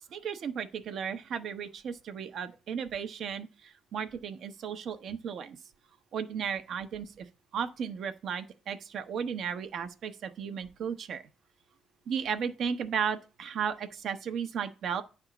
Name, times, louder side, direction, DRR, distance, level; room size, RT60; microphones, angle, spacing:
voice 1, 0.1-5.6 6.1-7.3 7.5-11.2 12.1-15.0, right 7 dB, 70° right, 0.9 m, -35 dB
9.9 x 3.6 x 6.9 m
cardioid pair, 90°, 0 cm